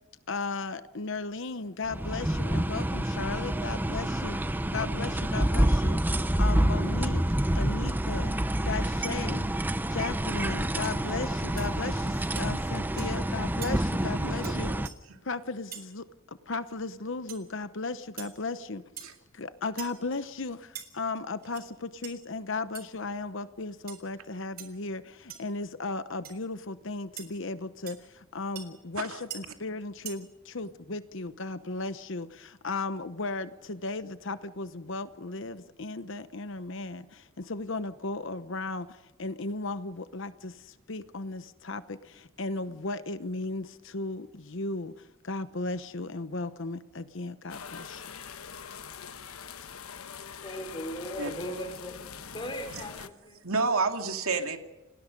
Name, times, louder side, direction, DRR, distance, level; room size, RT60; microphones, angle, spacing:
voice 1, 0.3-7.2 7.5-8.3 8.6-9.5 9.9-14.7 15.2-18.8 19.3-44.9 45.2-48.1, left 3 dB, 60° left, 12 dB, 1.0 m, -36 dB
sound 1, 1.8-14.9, right 1 dB, 10° right, 0.7 m, -28 dB
sound 2, 10.8-11.0 11.6-11.7 12.4-12.5 13.0-13.2 13.6-13.7 14.4-14.6 14.9-15.0 15.7-15.9 17.3-17.4 18.2-18.3 19.0-19.2 19.8-20.0 20.8-20.9 21.4-21.7 22.0-22.1 22.7-22.8 23.9-24.0 24.6-24.7 25.3-25.5 26.2-26.3 27.2-27.3 27.9-28.0 28.6-28.7 29.3-29.4 30.1-30.2, right 10 dB, 45° right, 4.2 m, -42 dB
voice 2, 14.0-14.8 19.0-19.1 28.9-29.2 51.2-51.3 52.7-52.8 53.4-54.6, right 4 dB, 85° right, 5 dB, 2.6 m, -30 dB
sound 3, 47.5-53.1, left 7 dB, 90° left, 1.2 m, -43 dB
voice 3, 50.4-53.4, equal, 25° left, 5 dB, 5.0 m, -38 dB
29.5 x 19.5 x 5.3 m, 1.1 s
head